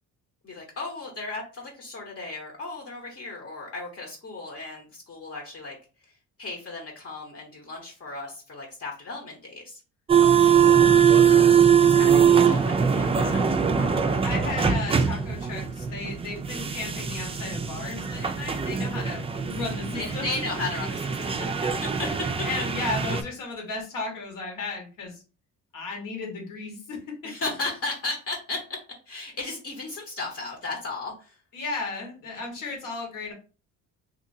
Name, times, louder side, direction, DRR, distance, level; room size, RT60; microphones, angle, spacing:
voice 1, 0.4-5.8 6.4-9.8 11.2-11.6 11.9-13.4 13.8-14.1 19.9-22.1 27.2-28.8 29.1-31.4, left 3 dB, 45° left, 0 dB, 1.0 m, -35 dB
sound 1, 10.1-23.2, right 7 dB, 20° right, 0.3 m, -22 dB
voice 2, 10.2-11.0 14.2-20.4 21.4-21.7 22.0-25.2 25.7-27.0 27.4-27.5 31.5-33.3, left 3 dB, 70° left, 0 dB, 1.5 m, -35 dB
2.9 x 2.7 x 2.6 m, 0.35 s
cardioid pair, 85°, 34 cm